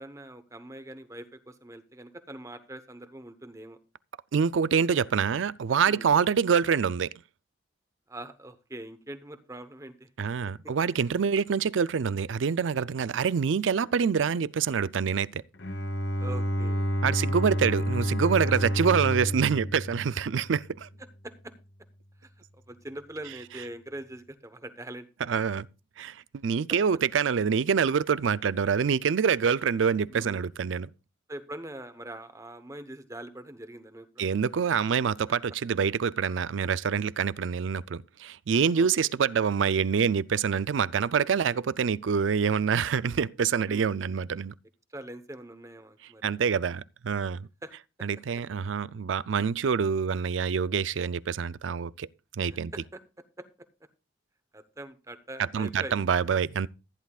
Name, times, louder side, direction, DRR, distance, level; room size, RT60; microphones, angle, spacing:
voice 1, 0.0-3.8 5.8-6.0 8.1-10.1 16.2-16.9 21.2-21.5 22.2-25.1 30.1-30.5 31.3-34.3 38.7-39.1 41.5-41.6 43.6-43.9 44.9-46.3 47.6-47.7 52.5-53.0 53.4-53.7 54.5-55.9, right 1 dB, 15° right, 1.0 m, -43 dB
voice 2, 4.3-7.2 10.2-15.4 17.0-20.9 25.3-25.7 26.0-30.9 34.2-44.5 46.2-47.5 48.0-52.1 52.3-52.7 55.5-56.7, right 6 dB, 85° right, 0.4 m, -26 dB
Bowed string instrument, 15.6-20.8, equal, 70° left, 1.2 m, -29 dB
15.0 x 10.5 x 2.4 m
head